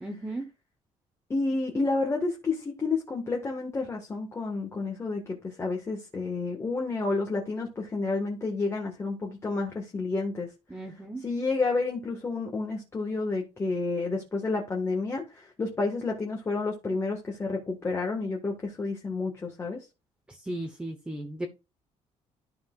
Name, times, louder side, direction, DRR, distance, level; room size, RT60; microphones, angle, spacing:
voice 1, 0.0-0.4 10.7-11.2 20.5-21.5, right 1 dB, 10° right, 1.0 m, -35 dB
voice 2, 1.3-10.5 11.2-19.8, left 3 dB, 20° left, 1.6 m, -30 dB
12.5 x 5.7 x 2.4 m
cardioid pair, 145°, 13 cm